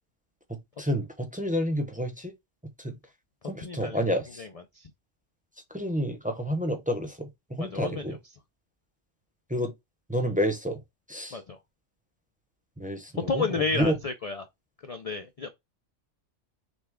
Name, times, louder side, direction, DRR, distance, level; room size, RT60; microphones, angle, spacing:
voice 1, 0.8-2.3 2.8-2.9 3.5-4.4 5.7-8.2 9.5-9.7 10.1-10.8 11.1-11.4 12.8-13.5 13.7-13.9, equal, 5° right, 0.8 m, -29 dB
voice 2, 3.6-4.9 7.6-8.2 11.3-11.6 13.3-14.4 14.9-15.5, left 4 dB, 45° left, 0.5 m, -32 dB
6.3 x 2.3 x 3.6 m
omnidirectional pair, 1.3 m